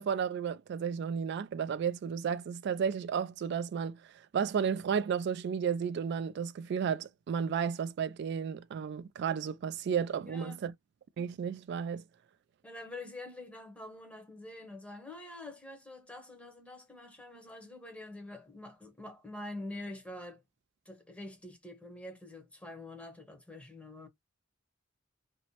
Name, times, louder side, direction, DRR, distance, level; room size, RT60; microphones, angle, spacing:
voice 1, 0.0-4.0 4.3-10.7 11.2-12.0, right 7 dB, 60° right, 0.3 m, -33 dB
voice 2, 10.3-10.6 12.6-20.4 20.9-24.1, left 2 dB, 5° left, 0.7 m, -46 dB
2.7 x 2.0 x 2.8 m
head